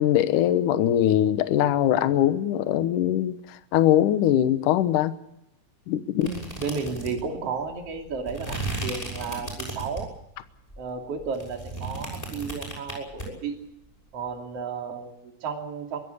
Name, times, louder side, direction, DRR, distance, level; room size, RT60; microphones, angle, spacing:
voice 1, 0.0-5.1 5.9-6.3, left 11 dB, 65° left, 11 dB, 2.2 m, -22 dB
sound 1, 6.2-10.2 10.7-13.3, right 2 dB, 10° left, 5.9 m, -35 dB
voice 2, 6.2-10.1 10.8-13.6 14.1-16.0, right 5 dB, 40° right, 2 dB, 3.5 m, -33 dB
23.5 x 15.5 x 8.1 m, 0.81 s
omnidirectional pair, 4.8 m